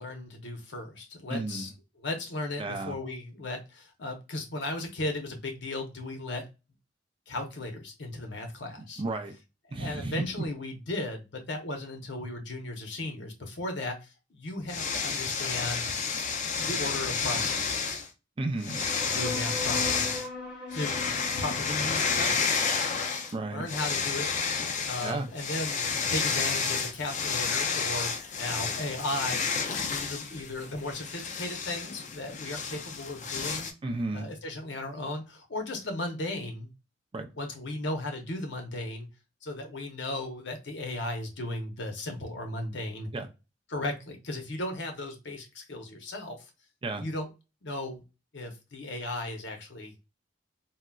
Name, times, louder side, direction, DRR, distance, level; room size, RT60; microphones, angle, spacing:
voice 1, 0.0-1.7 2.0-6.4 7.3-9.0 9.8-15.8 16.6-18.0 19.0-20.1 20.7-21.0 21.4-22.8 23.5-24.3 24.8-33.7 34.1-36.7 37.3-39.1 39.4-43.1 43.7-46.4 47.0-47.3 47.6-48.0 48.3-49.9, left 2 dB, 65° left, 0.8 m, -36 dB
voice 2, 1.3-1.7 2.6-3.0 9.0-9.3 9.7-10.3 18.4-18.9 23.3-23.6 25.0-25.3 33.8-34.3 37.1-37.3 43.1-43.3 46.8-47.0, right 2 dB, 30° right, 0.4 m, -33 dB
sound 1, 14.7-18.1 18.6-20.3 20.7-23.3 23.6-33.7, left 5 dB, 40° left, 0.4 m, -30 dB
sound 2, 18.7-25.7, left 2 dB, 5° right, 1.2 m, -41 dB
3.8 x 2.1 x 2.2 m
head